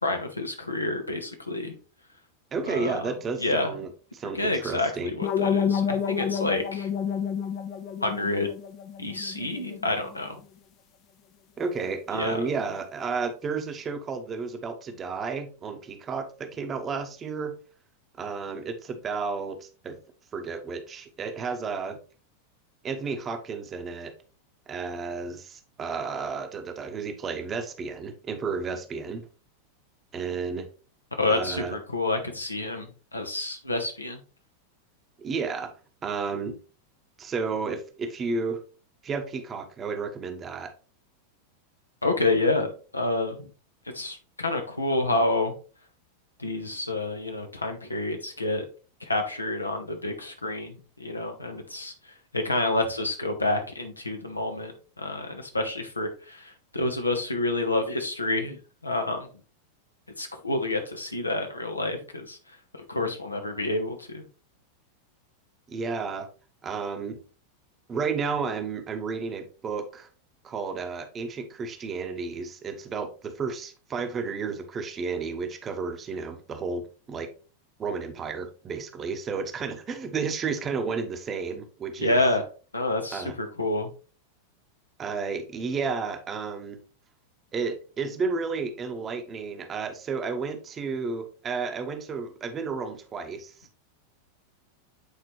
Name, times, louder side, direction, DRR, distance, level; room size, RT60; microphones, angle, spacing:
voice 1, 0.0-1.8 2.7-2.9 3.4-3.7 4.3-4.9 5.2-6.9 8.0-8.5 9.0-10.4 12.2-12.4 31.2-34.2 42.0-43.5 43.9-45.5 46.4-48.6 49.0-51.9 52.3-54.7 55.0-59.3 60.2-62.4 62.9-64.2 82.0-82.4 82.7-83.9, left 2 dB, 80° left, 1.1 m, -28 dB
voice 2, 2.5-5.2 11.6-17.5 18.2-20.0 20.3-22.0 22.8-24.1 24.7-29.2 30.1-30.7 31.3-31.8 35.2-35.7 36.0-36.6 37.2-38.6 39.0-40.7 65.7-66.3 66.6-67.2 67.9-70.1 70.4-77.3 77.8-82.2 83.1-83.3 85.0-86.8 87.5-93.8, right 5 dB, 25° right, 1.0 m, -32 dB
sound 1, 5.2-10.1, left 7 dB, 35° left, 0.6 m, -29 dB
8.3 x 4.1 x 3.1 m
figure-of-eight pair, 90°, 0 cm